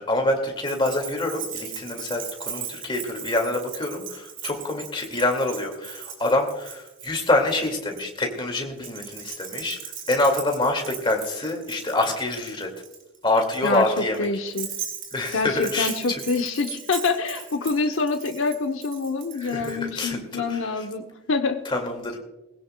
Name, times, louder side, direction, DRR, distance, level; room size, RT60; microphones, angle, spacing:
voice 1, 0.0-9.8 10.1-12.7 13.2-14.3 15.1-15.9 19.4-20.8 21.7-22.2, left 2 dB, 25° left, 3 dB, 2.2 m, -26 dB
Keys jangling, 0.6-8.0 8.8-19.8, right 8 dB, 60° right, 3.0 m, -38 dB
voice 2, 13.6-14.7 15.3-21.6, left 4 dB, 75° left, 5 dB, 0.9 m, -26 dB
20.0 x 16.5 x 2.3 m, 1.0 s
head